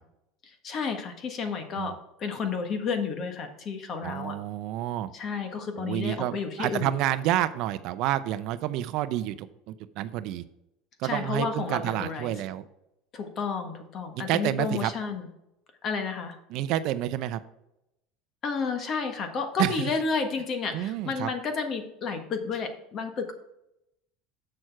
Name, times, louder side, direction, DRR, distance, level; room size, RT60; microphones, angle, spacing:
voice 1, 0.6-4.3 5.1-6.9 11.0-12.3 13.1-15.3 15.8-16.3 18.4-23.3, left 5 dB, 35° left, 6 dB, 1.5 m, -31 dB
voice 2, 4.0-5.1 5.8-10.4 11.0-12.6 14.1-14.9 16.5-17.4 19.6-19.8 20.7-21.3, right 13 dB, 55° right, 13 dB, 0.5 m, -29 dB
7.6 x 6.4 x 4.7 m, 0.84 s
supercardioid pair, 140°, 0 cm